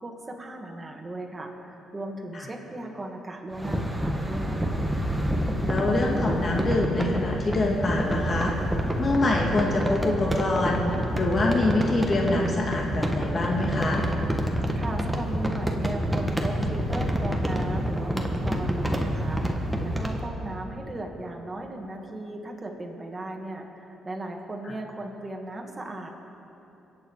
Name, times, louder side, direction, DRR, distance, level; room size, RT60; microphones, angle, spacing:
voice 1, 0.0-4.8 14.8-26.1, right 2 dB, 25° right, 1 dB, 2.0 m, -37 dB
sound 1, 3.5-20.2, equal, 5° right, 1.6 m, -28 dB
voice 2, 5.6-8.5 9.0-14.0, left 2 dB, 40° left, -1 dB, 2.0 m, -25 dB
23.5 x 8.6 x 4.8 m, 2.9 s
cardioid pair, 90°, 0 cm